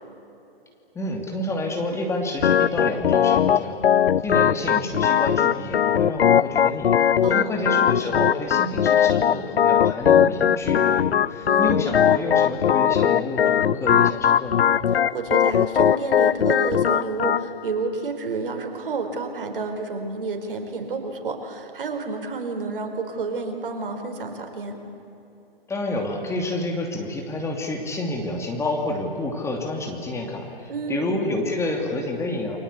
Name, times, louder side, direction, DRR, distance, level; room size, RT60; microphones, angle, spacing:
voice 1, 0.9-14.6 25.7-32.6, left 2 dB, 10° left, 1 dB, 2.7 m, -29 dB
Organ, 2.4-17.4, left 9 dB, 85° left, 0.5 m, -20 dB
voice 2, 7.2-7.6 11.5-11.8 14.9-24.8 30.7-31.3, right 4 dB, 65° right, 5 dB, 4.5 m, -30 dB
30.0 x 23.5 x 8.4 m, 3.0 s
hypercardioid pair, 130°, 30 cm